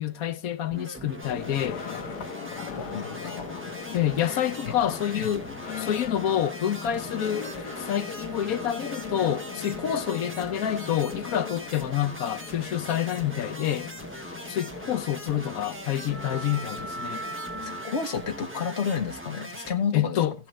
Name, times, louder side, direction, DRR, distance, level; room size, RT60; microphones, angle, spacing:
voice 1, 0.0-1.8 3.9-5.5 5.8-7.5 7.8-13.9 14.5-17.2 19.9-20.3, left 10 dB, 70° left, 1.2 m, -28 dB
sound 1, 0.7-19.7, right 1 dB, 10° right, 0.9 m, -41 dB
sound 2, 1.2-18.4, left 5 dB, 90° left, 1.5 m, -39 dB
voice 2, 2.8-3.6 4.2-4.8 5.2-5.3 17.6-20.2, left 6 dB, 50° left, 1.3 m, -31 dB
Bowed string instrument, 6.7-11.6, right 2 dB, 85° right, 1.9 m, -46 dB
17.0 x 7.4 x 3.2 m
omnidirectional pair, 1.6 m